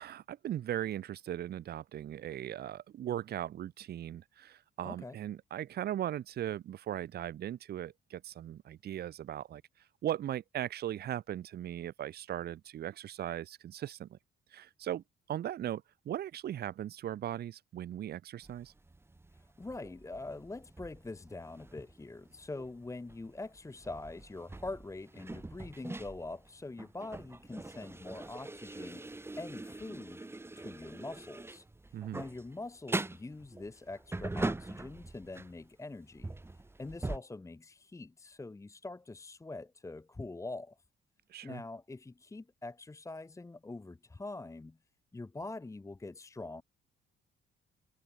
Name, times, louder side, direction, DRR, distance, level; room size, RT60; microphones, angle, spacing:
voice 1, 0.0-9.6 10.0-14.2 14.5-18.7 31.9-32.2 41.3-41.6, right 11 dB, 55° right, 0.6 m, -38 dB
voice 2, 4.8-5.2 19.3-30.3 30.6-31.7 32.1-40.8 41.4-44.8 45.1-46.6, left 2 dB, 15° left, 0.9 m, -44 dB
sound 1, 18.4-35.7 36.0-37.2, right 2 dB, 10° right, 0.9 m, -43 dB
cardioid pair, 90°, 20 cm